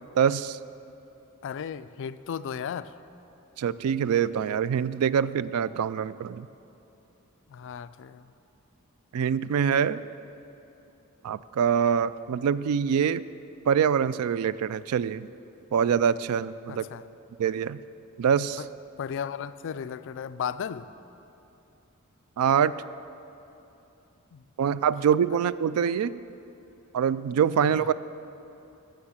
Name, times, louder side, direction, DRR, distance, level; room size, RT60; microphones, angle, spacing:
voice 1, 0.2-0.6 3.6-6.5 9.1-10.0 11.2-13.2 13.7-15.3 15.7-16.9 17.4-17.8 18.2-18.6 22.4-22.7 24.6-26.2 26.9-27.9, right 7 dB, 75° right, 17 dB, 0.3 m, -24 dB
voice 2, 1.4-2.9 7.5-8.3 16.7-17.0 18.6-18.7 19.0-20.9 24.3-24.7 27.8-27.9, left 7 dB, 60° left, 13 dB, 0.4 m, -35 dB
13.0 x 6.4 x 7.4 m, 2.9 s
head